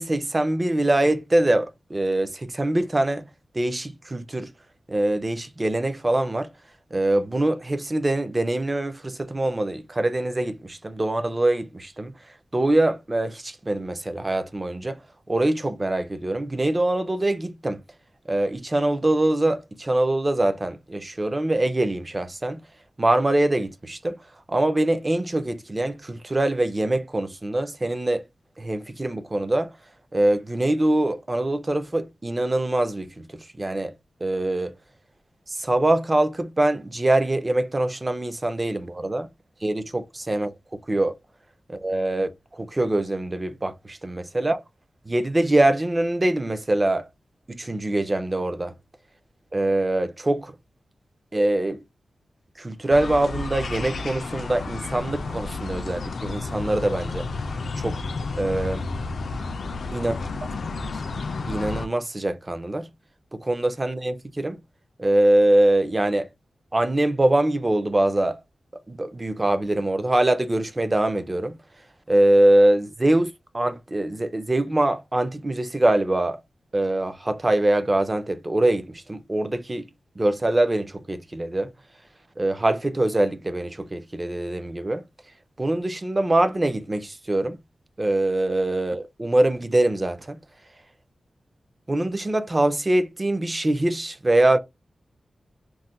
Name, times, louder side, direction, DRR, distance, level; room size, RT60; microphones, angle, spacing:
voice 1, 0.0-3.2 3.5-4.5 4.9-6.5 6.9-12.1 12.5-15.0 15.3-17.8 18.3-22.6 23.0-24.2 24.5-28.2 28.6-29.7 30.1-33.9 34.2-34.7 35.5-39.3 39.6-41.1 41.7-44.6 45.1-47.1 47.5-48.7 49.5-50.5 51.3-51.8 52.6-57.3 57.8-58.0 58.3-58.9 59.9-60.1 61.5-62.9 63.3-64.6 65.0-66.3 66.7-68.4 68.9-71.6 72.1-76.4 76.7-79.9 80.2-81.7 82.4-85.0 85.6-87.6 88.0-90.4 91.9-94.6, right 1 dB, 20° right, 0.4 m, -23 dB
sound 1, 52.9-61.9, left 3 dB, 65° left, 0.3 m, -31 dB
2.3 x 2.1 x 3.9 m
wide cardioid pair, 145°, 0 cm